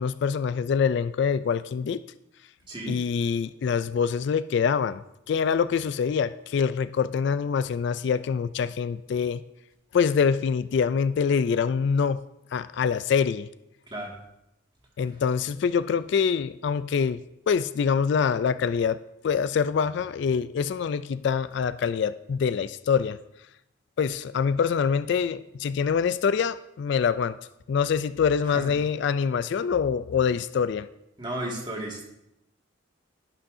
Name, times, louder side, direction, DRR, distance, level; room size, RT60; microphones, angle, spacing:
voice 1, 0.0-2.0 2.9-5.0 5.3-9.4 9.9-12.2 12.5-13.5 15.0-23.2 24.0-27.4 27.7-30.9, left 6 dB, 60° left, 15 dB, 0.3 m, -25 dB
voice 2, 31.2-32.0, right 1 dB, 25° right, -2 dB, 2.0 m, -33 dB
11.5 x 11.0 x 2.7 m, 0.85 s
head